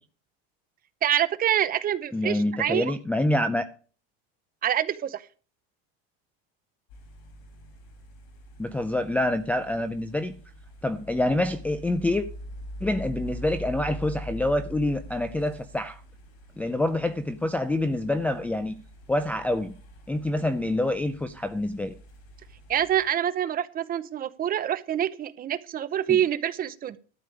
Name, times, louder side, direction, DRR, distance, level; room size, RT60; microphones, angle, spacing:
voice 1, 1.0-2.9 4.6-5.2 22.7-27.0, right 10 dB, 30° right, 13 dB, 0.8 m, -26 dB
voice 2, 2.1-3.6 8.6-10.3 10.8-12.3 12.8-16.0 16.6-18.7 19.1-19.7 20.1-21.9 26.1-26.2, left 1 dB, 5° left, 6 dB, 0.4 m, -26 dB
sound 1, 6.9-23.1, equal, 75° left, 4.2 m, -44 dB
12.5 x 5.0 x 8.5 m, 0.40 s
supercardioid pair, 135°, 32 cm